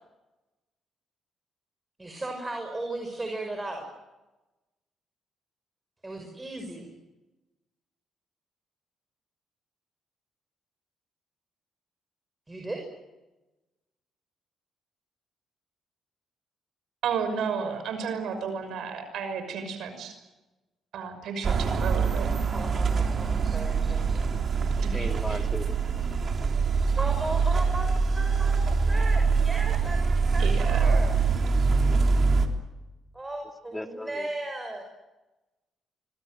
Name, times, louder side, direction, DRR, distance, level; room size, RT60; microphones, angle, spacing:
voice 1, 2.0-3.9 6.0-7.0 12.5-12.8 22.5-24.3 27.0-31.6 33.1-34.8, right 2 dB, 15° right, 3 dB, 6.0 m, -36 dB
voice 2, 17.0-20.1 20.9-22.3 24.9-25.4 30.4-31.0, right 6 dB, 75° right, 9 dB, 6.0 m, -32 dB
sound 1, 21.4-32.5, right 4 dB, 50° right, 3.4 m, -24 dB
voice 3, 24.7-25.7 33.7-34.3, left 1 dB, 10° left, 5 dB, 2.9 m, -36 dB
25.5 x 23.5 x 7.8 m, 1.1 s
cardioid pair, 90°, 0 cm